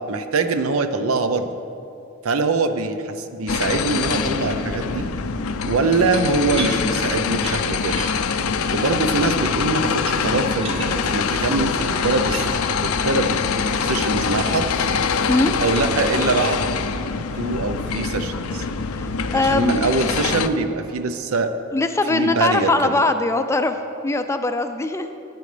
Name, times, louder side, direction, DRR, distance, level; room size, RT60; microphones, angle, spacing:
voice 1, 0.1-1.5 2.2-5.1 5.6-8.0 8.7-13.4 13.8-14.7 15.6-16.6 17.3-18.6 19.3-21.5 22.1-22.9, right 3 dB, 85° right, 8 dB, 0.7 m, -23 dB
sound 1, 3.5-20.5, left 5 dB, 90° left, 0.5 m, -24 dB
sound 2, 6.5-12.5, right 2 dB, 25° right, 1.2 m, -36 dB
sound 3, 10.9-16.2, equal, 50° right, 2.2 m, -41 dB
voice 2, 19.0-19.7 21.7-23.8 24.0-25.1, left 2 dB, 15° left, 8 dB, 0.4 m, -21 dB
16.0 x 9.2 x 3.3 m, 2.6 s
head